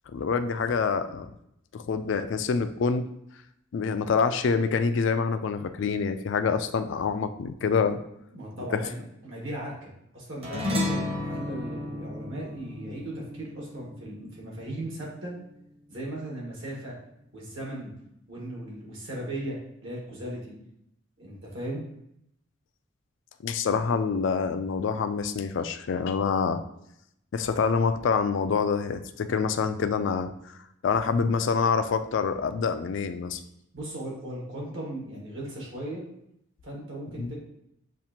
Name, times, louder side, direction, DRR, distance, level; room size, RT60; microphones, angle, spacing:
voice 1, 0.1-1.3 1.7-3.0 3.7-8.0 8.7-8.8 23.4-26.6 27.3-30.3 30.8-33.4 37.2-37.3, left 5 dB, 60° left, 10 dB, 0.3 m, -26 dB
voice 2, 8.3-15.3 15.9-17.0 17.3-17.9 18.3-20.6 21.2-21.8 33.7-36.0 36.6-37.4, right 1 dB, 70° right, -3 dB, 1.5 m, -37 dB
sound 1, 10.4-15.1, left 2 dB, 30° right, 0.8 m, -33 dB
7.2 x 2.5 x 2.8 m, 0.78 s
head